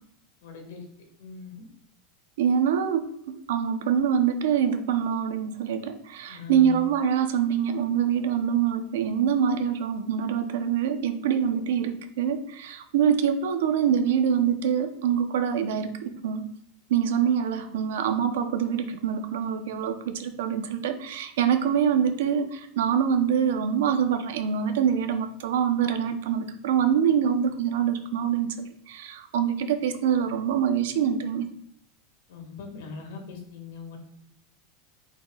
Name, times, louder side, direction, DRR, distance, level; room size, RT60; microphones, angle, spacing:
voice 1, 0.4-0.8 1.2-1.5 6.3-6.8 32.3-34.0, left 6 dB, 80° left, 3 dB, 1.9 m, -40 dB
voice 2, 2.4-16.4 16.9-31.5, right 8 dB, 80° right, 7 dB, 0.8 m, -25 dB
8.9 x 4.6 x 2.4 m, 0.69 s
supercardioid pair, 165°, 0 cm